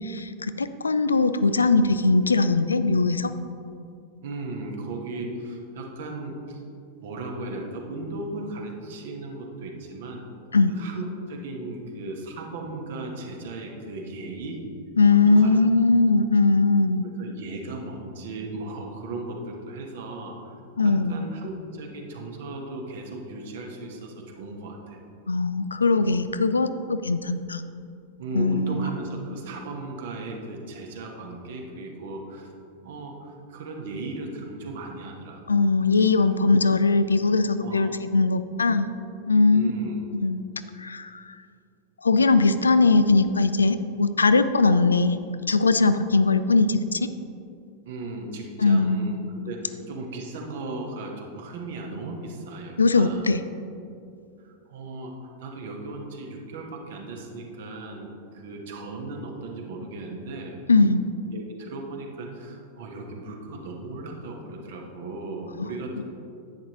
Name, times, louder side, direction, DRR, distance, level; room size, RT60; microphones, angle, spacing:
voice 1, 0.0-3.3 10.5-10.7 15.0-17.0 20.8-21.3 25.3-27.6 28.3-28.9 35.5-38.9 39.3-39.7 40.1-40.4 40.8-41.3 42.0-45.2 45.5-47.1 48.6-49.4 52.8-53.4 60.7-61.1 65.6-65.7, left 3 dB, 75° left, 11 dB, 0.4 m, -20 dB
voice 2, 4.2-6.6 7.0-10.2 10.7-14.6 15.3-15.5 17.0-20.5 20.8-25.0 28.2-32.5 32.8-35.4 37.6-37.9 39.5-40.0 47.8-53.3 54.4-60.6 61.3-66.0, right 2 dB, 55° right, 1 dB, 1.3 m, -36 dB
10.5 x 8.5 x 3.1 m, 2.5 s
figure-of-eight pair, 90°, 0 cm